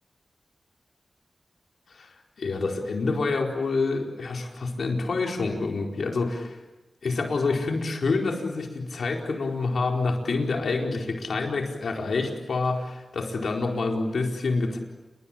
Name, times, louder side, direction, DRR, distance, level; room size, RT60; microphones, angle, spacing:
voice 1, 1.9-6.6 7.0-14.8, left 3 dB, 85° left, 2 dB, 4.5 m, -27 dB
29.0 x 22.0 x 8.8 m, 1.1 s
cardioid pair, 50°, 0 cm